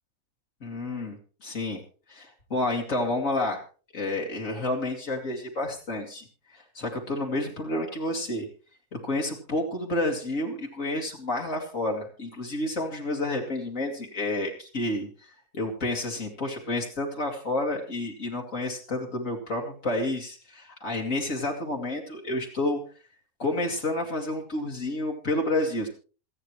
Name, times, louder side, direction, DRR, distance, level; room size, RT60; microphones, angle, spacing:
voice 1, 0.6-1.8 2.1-3.6 3.9-8.5 8.9-22.8 23.4-25.9, left 2 dB, 70° left, 0 dB, 2.6 m, -30 dB
27.0 x 9.1 x 3.2 m, 0.37 s
omnidirectional pair, 1.4 m